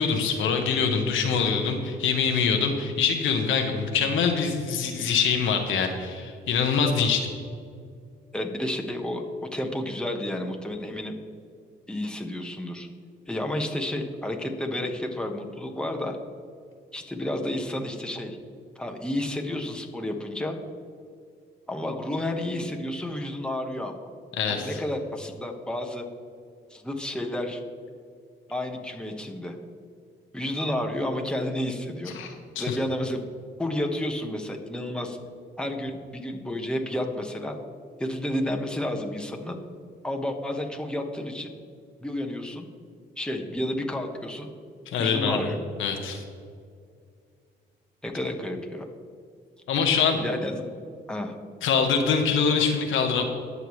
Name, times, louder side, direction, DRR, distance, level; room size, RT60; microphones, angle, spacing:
voice 1, 0.0-7.3 24.4-24.8 32.1-32.8 44.9-45.4 45.8-46.2 49.7-50.2 51.6-53.2, left 6 dB, 80° left, 3 dB, 1.3 m, -24 dB
voice 2, 8.3-11.2 11.9-12.9 13.3-16.2 16.9-18.4 18.7-20.6 21.7-24.0 24.5-26.1 26.7-27.6 28.5-29.6 30.3-32.2 32.6-33.2 33.6-35.2 35.6-37.6 38.0-39.6 40.0-41.5 42.0-42.7 43.2-44.5 45.0-45.6 48.0-48.8 50.2-50.6 51.1-51.4, left 1 dB, 5° left, 2 dB, 1.4 m, -31 dB
19.5 x 6.8 x 3.2 m, 2.3 s
cardioid pair, 90°, 20 cm